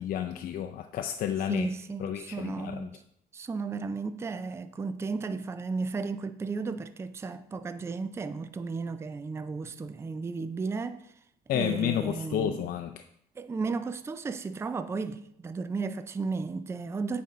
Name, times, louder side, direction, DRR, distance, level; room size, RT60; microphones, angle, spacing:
voice 1, 0.0-1.7 2.0-2.9 11.5-12.9, left 10 dB, 60° left, 0.5 m, -31 dB
voice 2, 1.5-3.0 3.3-11.2 11.5-12.7 13.4-17.2, right 4 dB, 15° right, 0.4 m, -34 dB
8.5 x 5.2 x 3.9 m
cardioid pair, 110°, 17 cm